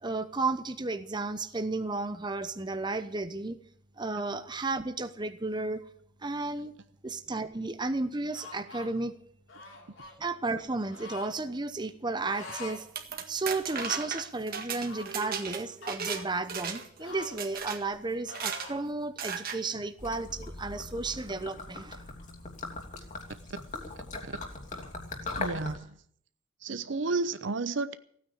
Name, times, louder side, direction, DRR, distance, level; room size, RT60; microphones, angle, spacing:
voice 1, 0.0-3.6 4.0-5.8 6.2-6.7 7.0-9.1 10.2-12.9 13.3-22.0, right 3 dB, 20° right, 0.9 m, -33 dB
sound 1, 8.3-8.9 9.5-10.2 10.9-11.3 12.2-12.8 13.1-13.2 13.6-14.2 14.8-16.2 17.0-18.0 18.3-18.8, left 3 dB, 80° left, 4.1 m, -45 dB
sound 2, 12.7-16.2 16.5-17.0 17.4-17.8 18.3-18.7 19.2-19.6, right 6 dB, 50° right, 1.8 m, -35 dB
Gurgling / Liquid, 20.0-25.8, left 3 dB, 40° left, 2.8 m, -40 dB
voice 2, 25.4-26.0 26.6-27.9, right 3 dB, 65° right, 0.8 m, -31 dB
16.0 x 9.4 x 8.5 m
head